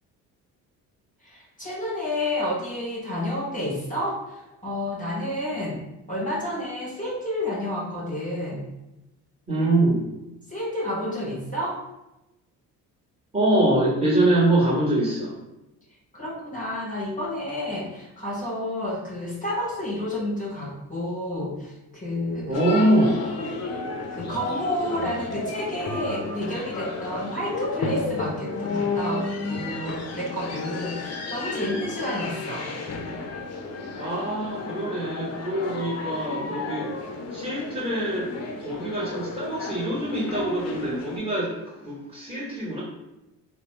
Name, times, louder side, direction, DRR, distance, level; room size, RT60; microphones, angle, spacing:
voice 1, 1.2-5.8 6.1-8.6 10.5-11.8 16.1-22.6 24.1-32.7, left 1 dB, 20° left, -6 dB, 0.9 m, -30 dB
voice 2, 9.5-10.0 13.3-15.4 22.5-23.2 33.9-38.3 38.6-42.8, right 1 dB, 15° right, -8 dB, 1.2 m, -24 dB
sound 1, 22.5-41.2, left 3 dB, 35° left, 0.5 m, -32 dB
2.8 x 2.1 x 3.1 m, 0.94 s
hypercardioid pair, 50°, 44 cm